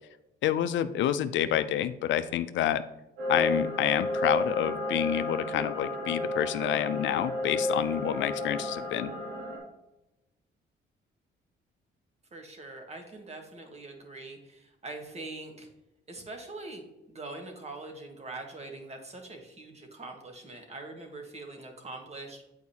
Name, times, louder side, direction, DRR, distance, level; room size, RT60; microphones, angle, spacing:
voice 1, 0.4-2.8 3.3-9.1, left 11 dB, 70° left, 13 dB, 0.4 m, -28 dB
sound 1, 3.2-9.6, left 1 dB, 85° right, 2.2 m, -32 dB
voice 2, 12.3-15.7 16.1-22.5, right 2 dB, 35° right, 3 dB, 1.3 m, -43 dB
7.9 x 4.7 x 2.8 m, 0.92 s
cardioid pair, 90°, 20 cm